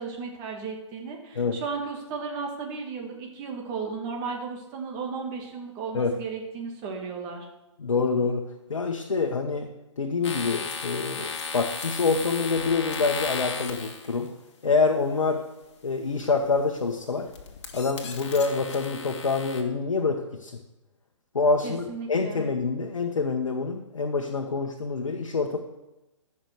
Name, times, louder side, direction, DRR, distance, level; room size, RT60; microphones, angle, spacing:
voice 1, 0.0-7.5 21.6-22.4, right 5 dB, 25° right, 1 dB, 2.1 m, -35 dB
voice 2, 7.8-8.4 8.7-9.7 10.0-14.3 14.6-15.4 15.8-17.3 17.7-20.5 21.3-25.6, left 4 dB, 80° left, 2 dB, 1.2 m, -26 dB
sound 1, 10.2-14.3 16.2-16.6 17.0-19.6, left 5 dB, 60° left, 1.8 m, -35 dB
14.5 x 6.0 x 4.7 m, 0.97 s
hypercardioid pair, 140°, 16 cm